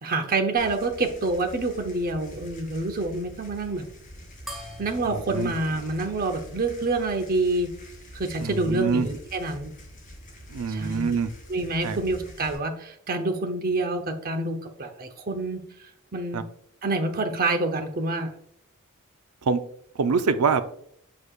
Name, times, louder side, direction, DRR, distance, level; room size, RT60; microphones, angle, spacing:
voice 1, 0.0-3.8 4.8-7.7 8.1-9.7 10.7-11.1 11.5-15.6 16.1-16.4 16.8-18.3, right 2 dB, 40° right, 6 dB, 0.8 m, -27 dB
sound 1, 0.6-12.6, equal, 40° left, 2.2 m, -45 dB
sound 2, 4.5-7.3, equal, ahead, 1.2 m, -45 dB
voice 2, 5.0-5.5 8.4-9.1 10.5-11.3 11.8-12.0 16.3-16.4 19.4-19.6 20.0-20.6, right 5 dB, 75° right, 10 dB, 0.5 m, -25 dB
8.7 x 4.7 x 2.4 m, 0.69 s
head